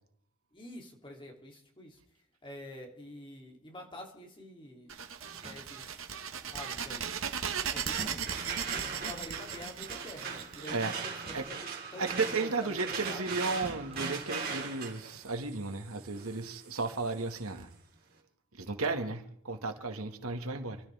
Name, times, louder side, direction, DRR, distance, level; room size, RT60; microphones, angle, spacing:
voice 1, 0.5-2.0 2.4-5.0 5.4-6.0 6.3-7.0 7.7-11.6 11.9-13.3, left 1 dB, 25° left, 3.1 m, -48 dB
sound 1, 4.9-11.4, right 7 dB, 65° right, 1.6 m, -37 dB
sound 2, 5.2-6.0 7.3-9.1 11.0-11.8 12.1-12.2 13.6-14.7, right 1 dB, 25° right, 1.0 m, -48 dB
sound 3, 7.6-17.5, right 5 dB, 45° right, 4.0 m, -40 dB
voice 2, 12.0-17.7 18.6-20.8, right 3 dB, 85° right, 2.0 m, -34 dB
29.0 x 13.0 x 3.6 m
head